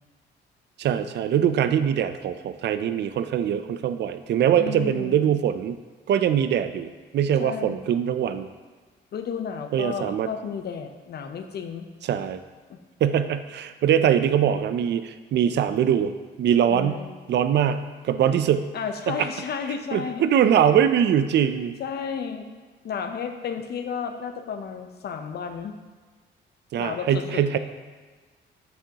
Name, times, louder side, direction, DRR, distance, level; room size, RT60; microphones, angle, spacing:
voice 1, 0.8-5.8 6.1-8.5 9.7-10.3 12.0-12.4 13.0-17.0 17.3-18.7 19.1-19.3 19.9-21.8 26.7-27.6, right 9 dB, 60° right, 10 dB, 0.5 m, -22 dB
voice 2, 4.6-5.3 7.4-7.8 9.1-11.9 12.7-12.8 16.7-17.1 18.7-20.2 20.5-20.7 21.8-22.5 22.8-25.7 26.8-27.4, left 6 dB, 55° left, 7 dB, 0.7 m, -32 dB
7.6 x 5.6 x 2.9 m, 1.4 s
cardioid pair, 90°, 20 cm